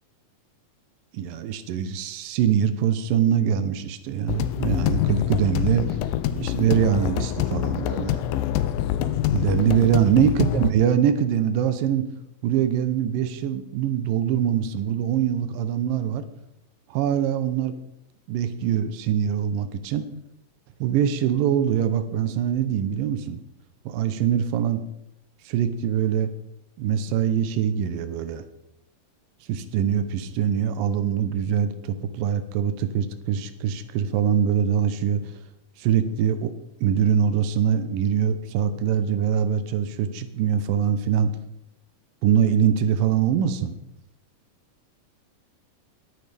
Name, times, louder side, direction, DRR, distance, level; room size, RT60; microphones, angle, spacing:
voice 1, 1.1-6.0 6.3-8.2 9.3-12.1 12.4-16.3 16.9-17.7 18.3-20.1 20.8-23.4 23.9-24.8 25.5-26.3 26.8-28.4 29.5-35.3 35.8-36.5 36.8-41.3 42.2-43.7, right 8 dB, 85° right, 10 dB, 2.5 m, -23 dB
sound 1, 4.3-10.7, left 11 dB, 85° left, 2.3 m, -25 dB
20.0 x 9.6 x 3.4 m, 0.82 s
omnidirectional pair, 3.8 m